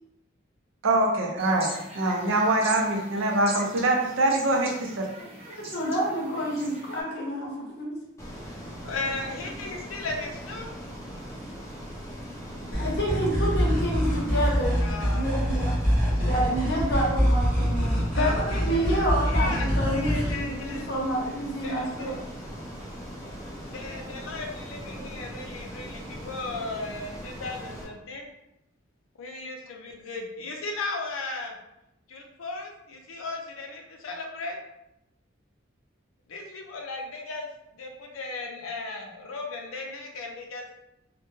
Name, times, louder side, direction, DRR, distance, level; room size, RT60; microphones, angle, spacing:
voice 1, 0.8-5.1, right 2 dB, 80° right, 1 dB, 0.5 m, -24 dB
sound 1, 1.4-7.0, right 1 dB, 30° right, 0.6 m, -41 dB
voice 2, 5.2-8.0 12.5-15.8 16.2-22.2, equal, 50° left, -3 dB, 0.7 m, -29 dB
Ocean, 8.2-27.8, equal, 15° left, 0.4 m, -40 dB
voice 3, 8.8-10.7 14.8-15.5 15.9-16.5 18.1-18.9 19.2-20.9 21.6-22.2 23.7-28.3 29.2-31.6 32.1-34.6 36.3-40.7, left 3 dB, 90° left, 1 dB, 0.5 m, -36 dB
sound 2, 12.7-20.3, equal, 10° right, 0.9 m, -25 dB
2.1 x 2.1 x 3.1 m, 0.87 s
head